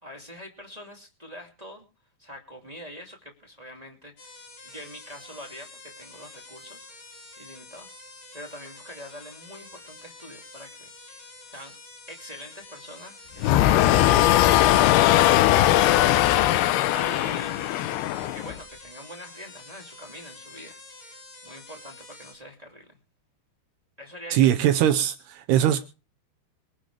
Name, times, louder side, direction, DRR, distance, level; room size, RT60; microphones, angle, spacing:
voice 1, 0.0-1.8 2.2-4.3 4.6-6.9 7.4-7.9 8.3-10.9 11.4-11.7 12.1-14.2 16.9-20.8 21.4-23.0 24.0-24.5, left 1 dB, 15° right, 1.5 m, -44 dB
sound 1, 4.2-22.3, left 2 dB, 50° left, 6.7 m, -47 dB
sound 2, 13.4-18.6, left 14 dB, 75° left, 2.4 m, -19 dB
voice 2, 24.3-25.8, right 11 dB, 75° right, 2.6 m, -21 dB
24.5 x 10.0 x 3.4 m
omnidirectional pair, 5.2 m